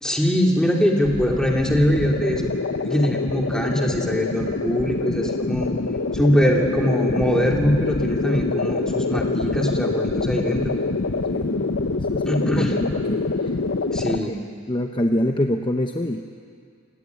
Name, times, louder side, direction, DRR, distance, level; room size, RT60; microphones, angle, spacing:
voice 1, 0.0-2.5 2.8-5.7 6.1-10.8 12.3-12.8 13.9-14.4, equal, 5° left, -1 dB, 2.9 m, -22 dB
sound 1, 1.0-14.2, left 3 dB, 70° left, 0.8 m, -25 dB
voice 2, 11.3-13.3 14.1-14.4 14.7-16.2, left 1 dB, 25° left, 4 dB, 0.9 m, -26 dB
28.0 x 17.0 x 9.5 m, 2.2 s
head